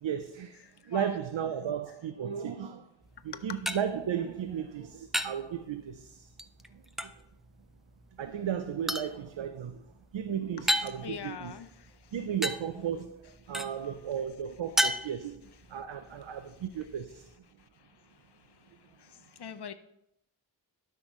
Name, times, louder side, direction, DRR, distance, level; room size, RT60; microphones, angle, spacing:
voice 1, 0.0-2.9 3.2-6.3 6.7-7.1 8.2-9.9 10.1-11.5 12.1-15.4 15.7-17.3, right 8 dB, 90° right, 0.6 m, -35 dB
voice 2, 0.9-1.2 3.3-3.6 10.6-11.9 19.0-19.7, left 7 dB, 65° left, 0.6 m, -42 dB
sound 1, 3.0-17.4, equal, ahead, 0.4 m, -37 dB
12.5 x 5.8 x 3.1 m
wide cardioid pair, 70°, 44 cm